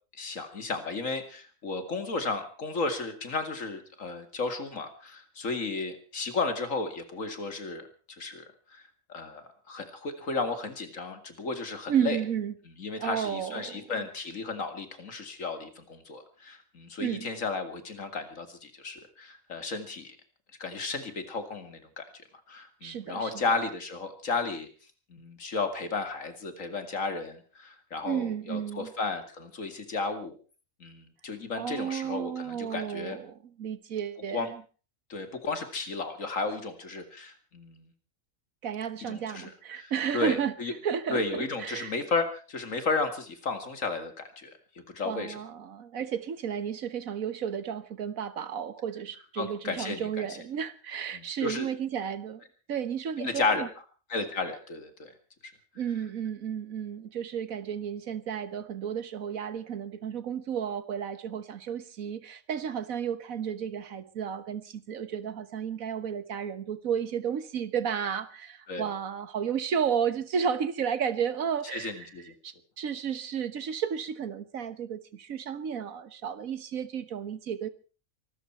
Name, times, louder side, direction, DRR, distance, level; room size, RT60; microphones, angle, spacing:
voice 1, 0.2-8.8 9.1-12.2 12.8-20.2 20.6-22.0 22.5-24.7 25.1-30.4 30.8-33.2 34.3-34.5 35.1-37.9 39.1-40.7 41.1-44.5 44.9-45.4 49.4-50.3 51.1-51.7 53.2-53.7 54.1-55.1 68.7-68.9 71.7-72.3, left 3 dB, 70° left, 8 dB, 2.6 m, -33 dB
voice 2, 11.9-12.5 13.0-14.1 17.0-17.3 22.8-23.4 28.0-28.9 31.5-34.6 38.6-40.5 40.8-41.9 45.0-53.7 55.8-72.1 72.4-77.7, right 8 dB, 90° right, 13 dB, 1.6 m, -32 dB
24.5 x 13.5 x 4.4 m, 0.38 s
omnidirectional pair, 1.4 m